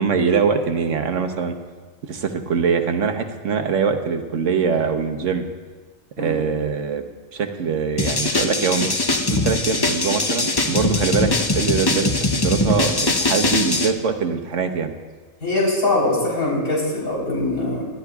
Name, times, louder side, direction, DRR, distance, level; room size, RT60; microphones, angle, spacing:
voice 1, 0.0-1.5 2.0-5.4 6.2-7.0 7.3-8.9 9.3-14.9, right 6 dB, 65° right, 6 dB, 1.2 m, -23 dB
sound 1, 8.0-13.9, left 2 dB, 30° left, 0.5 m, -21 dB
voice 2, 15.4-17.8, left 2 dB, 90° left, -5 dB, 4.4 m, -22 dB
26.0 x 12.5 x 2.4 m, 1.4 s
omnidirectional pair, 1.4 m